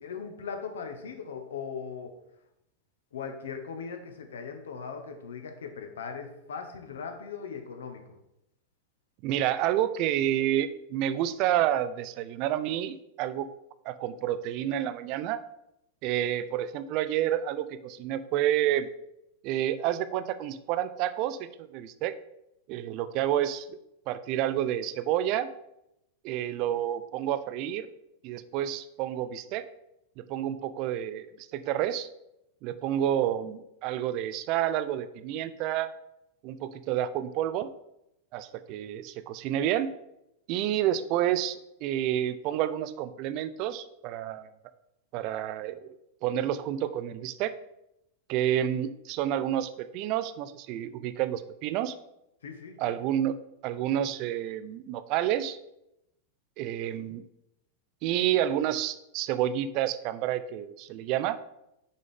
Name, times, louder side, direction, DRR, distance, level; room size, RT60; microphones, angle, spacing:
voice 1, 0.0-2.1 3.1-8.0 52.4-53.0, left 6 dB, 65° left, 5 dB, 1.0 m, -39 dB
voice 2, 9.2-13.5 13.9-15.4 16.0-18.9 19.4-22.1 22.7-23.7 24.1-25.5 26.2-27.9 28.2-29.7 30.2-32.1 32.6-35.9 36.4-37.7 38.3-39.9 40.5-44.5 45.1-45.9 46.2-47.5 48.3-51.9 52.8-53.4 53.6-55.6 56.6-57.2 58.0-61.4, right 11 dB, 40° right, 13 dB, 0.4 m, -29 dB
6.3 x 5.1 x 3.7 m, 0.83 s
figure-of-eight pair, 90°, 0 cm